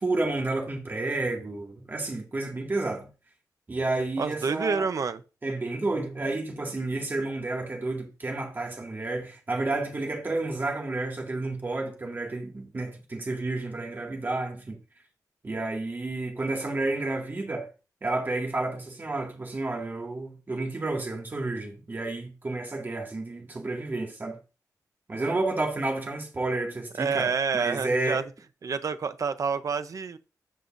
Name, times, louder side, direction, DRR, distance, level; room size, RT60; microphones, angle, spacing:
voice 1, 0.0-3.1 3.7-4.8 5.4-14.8 15.4-17.7 18.0-24.4 25.1-28.2, right 2 dB, 30° right, 2.0 m, -31 dB
voice 2, 4.2-5.2 27.0-28.2 28.6-30.2, right 5 dB, 55° right, 0.7 m, -28 dB
16.0 x 5.5 x 2.6 m
wide cardioid pair, 165°, 7 cm